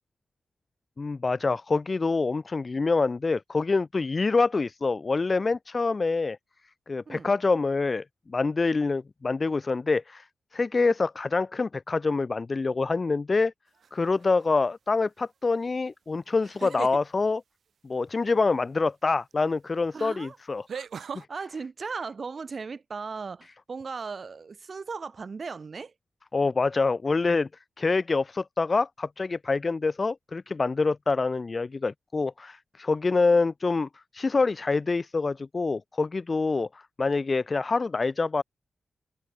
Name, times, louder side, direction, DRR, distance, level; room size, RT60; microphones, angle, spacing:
voice 1, 1.0-6.4 6.9-10.3 10.5-13.5 13.9-17.4 17.8-20.9 21.1-21.3 26.3-27.5 27.8-38.4, left 3 dB, 35° left, 0.8 m, -26 dB
sound 1, 13.8-14.2 16.4-17.0 19.3-19.4 20.7-21.2, right 7 dB, 70° right, 1.8 m, -37 dB
voice 2, 19.9-20.4 21.3-25.9, right 4 dB, 45° right, 1.7 m, -37 dB
wide cardioid pair, 130°, 0 cm